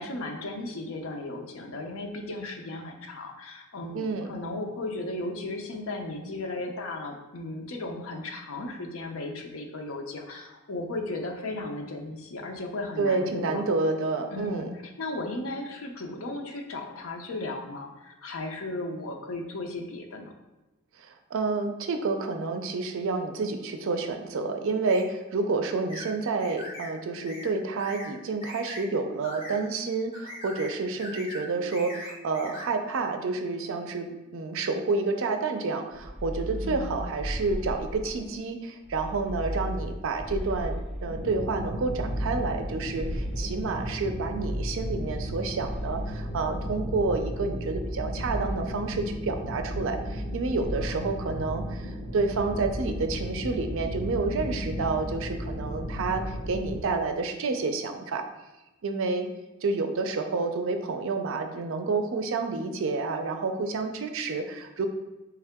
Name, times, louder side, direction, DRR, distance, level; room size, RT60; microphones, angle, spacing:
voice 1, 0.0-13.6 14.3-20.3 36.5-37.0 50.8-51.5, left 2 dB, 70° left, 3 dB, 0.6 m, -36 dB
voice 2, 3.9-4.3 13.0-14.7 21.0-58.3 58.8-59.3 59.6-64.9, right 3 dB, 65° right, 7 dB, 0.5 m, -29 dB
sound 1, 24.9-25.1 25.9-26.1 26.4-26.9 27.3-27.5 27.8-28.1 28.4-28.8 29.2-29.6 30.1-30.7 31.0-31.4 31.7-32.7, left 1 dB, 30° left, 1.2 m, -40 dB
sound 2, 35.9-38.4 38.8-41.3 41.7-43.9 44.4-46.3 46.9-47.9 48.2-48.7 49.5-50.3 50.5-51.0, equal, ahead, 0.3 m, -36 dB
sound 3, 41.1-56.8, equal, 55° left, 1.3 m, -35 dB
3.7 x 3.4 x 3.5 m, 1.1 s
head